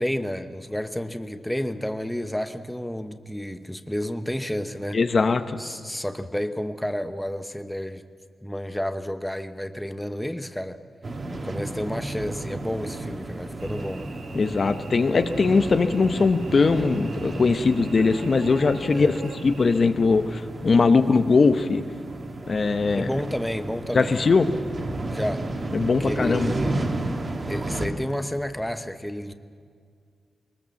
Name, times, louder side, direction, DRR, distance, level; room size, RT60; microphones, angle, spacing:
voice 1, 0.0-5.0 5.6-8.0 8.4-10.8 11.4-14.1 18.9-19.2 22.9-24.2 25.1-25.4 26.0-26.9 27.5-29.3, equal, 5° left, 9 dB, 0.9 m, -30 dB
voice 2, 4.9-5.6 14.3-19.1 19.4-21.8 22.5-23.1 23.9-24.5 25.7-26.5, left 4 dB, 50° left, 9 dB, 0.9 m, -20 dB
sound 1, 11.0-27.9, right 2 dB, 45° right, 2.1 m, -33 dB
Cricket / Buzz, 13.6-19.8, right 4 dB, 90° right, 2.0 m, -43 dB
21.5 x 20.0 x 7.2 m, 2.1 s
cardioid pair, 90°, 0 cm